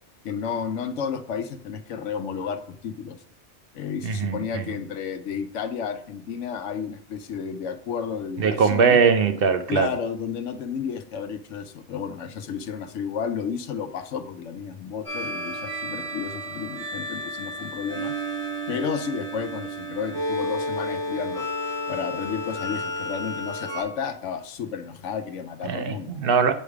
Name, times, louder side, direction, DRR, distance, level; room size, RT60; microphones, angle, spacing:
voice 1, 0.2-3.2 3.7-9.0 9.7-18.1 18.7-21.5 21.9-26.1, left 7 dB, 90° left, 10 dB, 1.0 m, -32 dB
voice 2, 4.0-4.6 8.4-9.9 25.6-26.5, right 5 dB, 60° right, 8 dB, 0.7 m, -21 dB
sound 1, 15.0-23.8, equal, 85° right, 3.4 m, -31 dB
8.6 x 3.3 x 4.7 m, 0.63 s
omnidirectional pair, 1.2 m